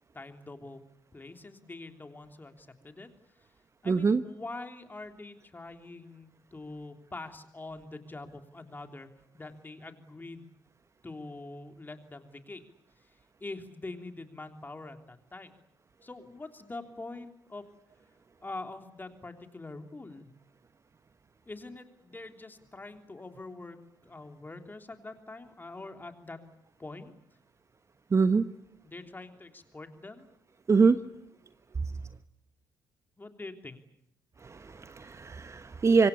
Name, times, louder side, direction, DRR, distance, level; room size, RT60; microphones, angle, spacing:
voice 1, 0.1-0.8 1.1-3.1 3.8-9.1 9.3-10.5 11.0-12.6 13.4-15.5 16.0-17.6 18.4-20.3 21.5-23.8 24.0-26.4 26.8-27.2 28.8-30.3 33.2-33.8, left 2 dB, 20° left, 6 dB, 3.2 m, -44 dB
voice 2, 3.9-4.2 28.1-28.4 30.7-31.0 34.4-36.1, right 4 dB, 30° right, 12 dB, 1.1 m, -24 dB
25.5 x 24.0 x 8.6 m, 0.76 s
figure-of-eight pair, 50°, 10 cm